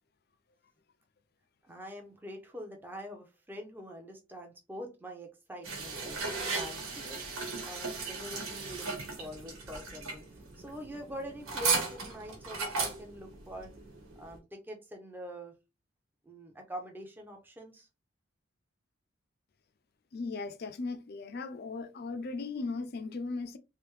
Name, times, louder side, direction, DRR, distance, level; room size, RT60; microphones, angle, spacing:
voice 1, 1.6-6.2 6.5-7.2 7.6-13.7 14.2-15.5 16.2-17.9, equal, 10° right, 0.6 m, -44 dB
sound 1, 5.6-14.4, right 4 dB, 90° right, 1.3 m, -36 dB
voice 2, 20.1-23.6, left 3 dB, 50° left, 0.4 m, -37 dB
3.4 x 2.6 x 3.1 m
head